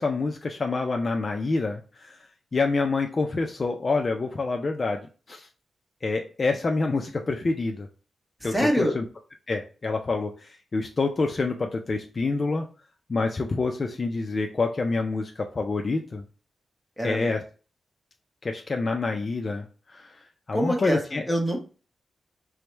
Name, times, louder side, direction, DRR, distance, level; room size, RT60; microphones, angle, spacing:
voice 1, 0.0-2.2 2.5-5.0 5.3-5.5 6.0-7.9 8.4-9.0 9.5-12.7 13.1-16.2 17.0-17.4 18.4-20.2 20.5-21.2, left 3 dB, 35° left, 3 dB, 0.3 m, -27 dB
voice 2, 8.4-9.0 17.0-17.3 20.5-21.6, equal, ahead, 2 dB, 0.8 m, -25 dB
4.5 x 2.0 x 3.2 m, 0.36 s
wide cardioid pair, 150°, 0 cm